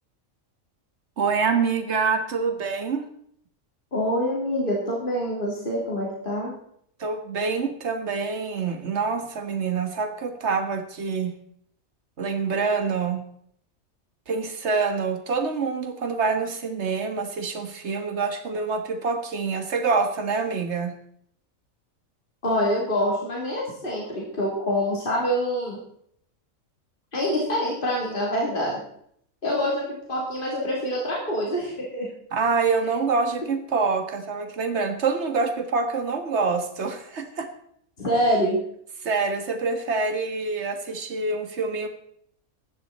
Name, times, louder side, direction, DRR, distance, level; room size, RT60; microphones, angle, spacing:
voice 1, 1.2-3.0 7.0-11.3 12.2-13.2 14.3-20.9 32.3-37.5 39.0-41.9, right 4 dB, 55° right, 7 dB, 1.8 m, -26 dB
voice 2, 3.9-6.5 22.4-25.8 27.1-28.8 29.4-32.1 38.0-38.6, equal, 40° left, -3 dB, 3.6 m, -25 dB
16.0 x 11.5 x 4.2 m, 0.67 s
omnidirectional pair, 1.4 m